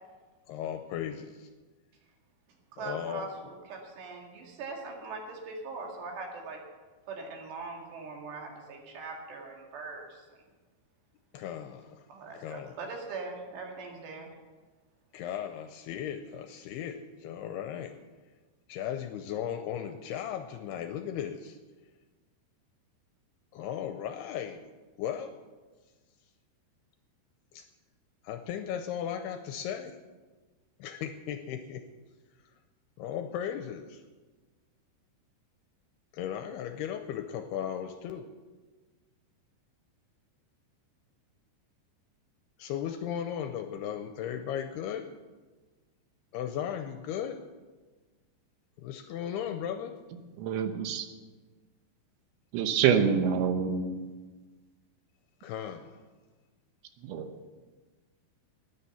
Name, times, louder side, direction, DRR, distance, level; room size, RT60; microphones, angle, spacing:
voice 1, 0.5-1.5 2.8-3.3 11.3-12.0 12.3-12.7 15.1-17.9 18.7-21.6 23.5-24.7 25.0-25.3 27.5-27.7 28.2-30.0 30.8-31.8 33.0-34.0 36.1-38.3 42.6-45.1 46.3-47.4 48.8-50.0 55.4-56.0, left 9 dB, 80° left, 8 dB, 2.4 m, -36 dB
voice 2, 2.8-6.6 7.1-10.2 12.1-14.3, right 3 dB, 70° right, 0 dB, 4.2 m, -41 dB
voice 3, 50.4-51.1 52.5-53.9 57.0-57.3, right 7 dB, 90° right, 8 dB, 3.4 m, -26 dB
12.0 x 10.0 x 7.0 m, 1.3 s
omnidirectional pair, 5.1 m